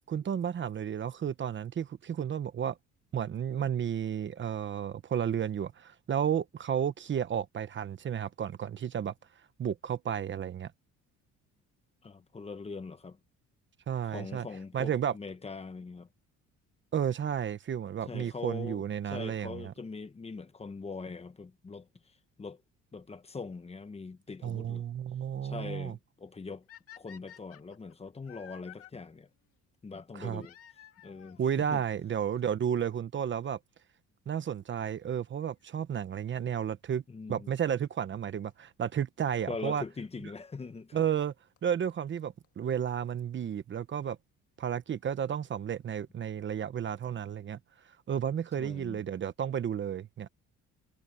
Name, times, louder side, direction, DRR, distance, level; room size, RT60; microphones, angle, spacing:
voice 1, 0.1-2.8 3.1-9.1 9.6-10.7 13.9-14.5 14.7-15.1 16.9-19.7 24.4-26.0 30.1-30.4 31.4-33.6 34.3-37.0 37.3-39.8 40.9-41.3 41.6-44.2 44.6-47.6 47.9-50.3, right 8 dB, 40° right, 1.0 m, -32 dB
voice 2, 12.0-13.2 14.1-16.1 18.1-18.8 19.1-22.6 22.9-24.8 25.4-26.6 27.0-29.3 29.8-30.5 31.0-31.8 37.1-37.5 39.5-41.0 48.6-49.0, left 4 dB, 20° left, 1.2 m, -42 dB
sound 1, 26.7-28.9 30.4-31.4 32.4-32.5 33.2-33.3 33.4-33.5 35.4-35.7 38.5-38.6 39.6-39.7 41.2-41.3 41.6-41.7 41.9-42.0 42.2-42.3 42.4-42.5 42.7-42.8 43.0-43.1, left 10 dB, 50° left, 1.9 m, -53 dB
cardioid pair, 130°, 30 cm